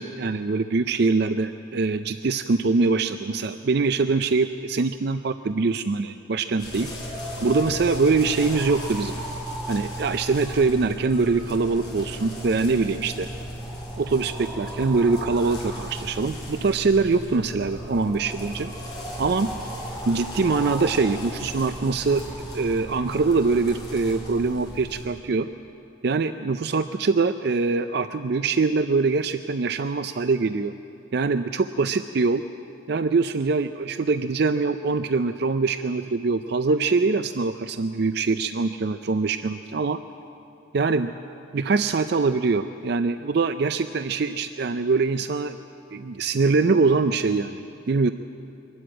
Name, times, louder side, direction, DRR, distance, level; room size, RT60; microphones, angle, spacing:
voice 1, 0.0-6.9 7.4-9.2 9.7-13.3 14.0-18.7 19.2-19.5 20.1-22.2 22.5-25.5 26.0-30.7 31.1-32.4 32.9-40.0 40.7-41.1 41.5-45.6 45.9-48.1, right 4 dB, 55° right, 10 dB, 0.5 m, -23 dB
sound 1, 6.6-25.1, equal, 20° left, 4.4 m, -35 dB
23.0 x 12.5 x 9.0 m, 2.6 s
head